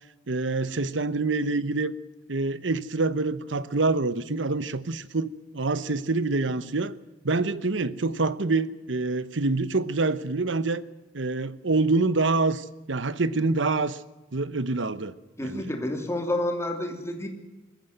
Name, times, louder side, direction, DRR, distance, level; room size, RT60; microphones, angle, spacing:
voice 1, 0.3-1.9 2.3-6.9 7.2-10.8 11.1-14.0 14.3-15.1 15.4-15.7, right 3 dB, 85° right, 15 dB, 1.0 m, -26 dB
voice 2, 15.4-17.3, left 1 dB, 15° left, 4 dB, 2.9 m, -29 dB
21.0 x 14.5 x 9.3 m, 1.1 s
head